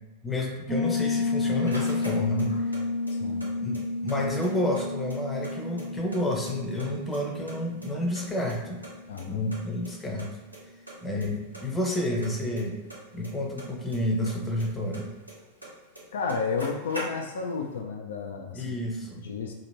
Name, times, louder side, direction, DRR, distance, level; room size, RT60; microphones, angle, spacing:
voice 1, 0.2-2.8 3.6-8.8 9.3-10.3 11.0-12.8 13.1-15.1 18.5-19.2, left 1 dB, 15° left, 0 dB, 0.8 m, -30 dB
Piano, 0.7-9.2, left 3 dB, 20° right, 0.9 m, -31 dB
sound 1, 1.1-2.8 3.1-4.2 4.4-4.5 4.8-6.2 6.4-7.2 7.5-8.9 9.2-9.3 9.5-9.6 9.8-9.9 10.2-10.6 10.9-11.3 11.5-14.0 14.2-15.7 15.9-16.0 16.3-17.5, right 1 dB, 85° right, 1.1 m, -42 dB
voice 2, 3.1-3.5 9.1-9.4 16.1-18.8 19.2-19.5, left 5 dB, 65° left, 3 dB, 0.3 m, -32 dB
2.9 x 2.8 x 4.1 m, 1.2 s
figure-of-eight pair, 90°, 0 cm